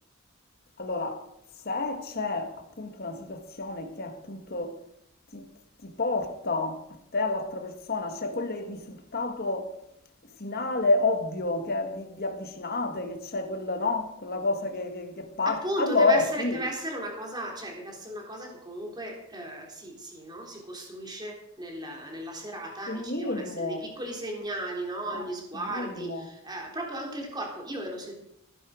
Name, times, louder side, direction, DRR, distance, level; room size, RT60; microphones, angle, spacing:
voice 1, 0.8-1.3 1.7-4.8 5.3-5.4 5.8-6.8 7.1-9.7 10.4-16.6 22.9-23.8 25.1-25.2 25.7-26.2, left 3 dB, 50° left, 1.7 m, -29 dB
voice 2, 15.4-28.1, right 1 dB, 20° right, 3.4 m, -36 dB
15.0 x 11.0 x 5.1 m
head